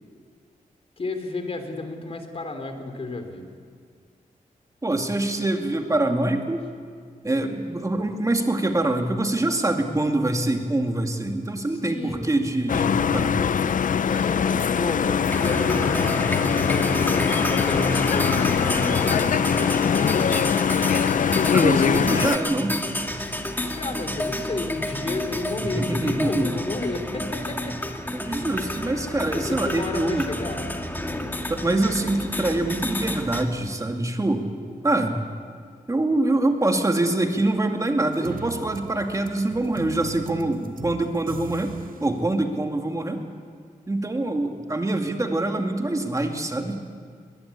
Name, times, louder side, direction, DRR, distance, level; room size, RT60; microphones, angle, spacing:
voice 1, 1.0-3.5 11.8-12.5 14.1-19.7 23.6-27.9 29.3-30.7, left 2 dB, 45° left, 6 dB, 3.0 m, -32 dB
voice 2, 4.8-6.6 7.2-13.7 21.5-22.8 25.6-26.5 28.1-30.3 31.5-34.5 34.8-35.2 35.9-41.7 42.0-43.3 43.9-46.8, right 2 dB, 20° right, 4 dB, 2.3 m, -24 dB
sound 1, 12.7-22.4, left 7 dB, 70° left, 0.6 m, -22 dB
sound 2, 15.3-33.4, left 1 dB, 15° left, 2.0 m, -30 dB
sound 3, 38.0-42.1, right 7 dB, 80° right, 0.9 m, -39 dB
21.5 x 21.0 x 8.4 m, 2.1 s
wide cardioid pair, 110°, 14 cm